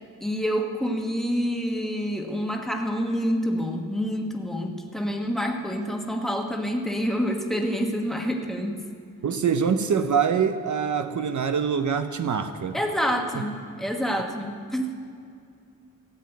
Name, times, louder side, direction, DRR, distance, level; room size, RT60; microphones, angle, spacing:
voice 1, 0.2-8.8 12.7-15.0, equal, ahead, 2 dB, 1.4 m, -27 dB
voice 2, 9.2-12.8 13.3-13.4, right 6 dB, 60° right, 8 dB, 0.7 m, -24 dB
14.5 x 7.3 x 9.3 m, 2.4 s
wide cardioid pair, 115°, 34 cm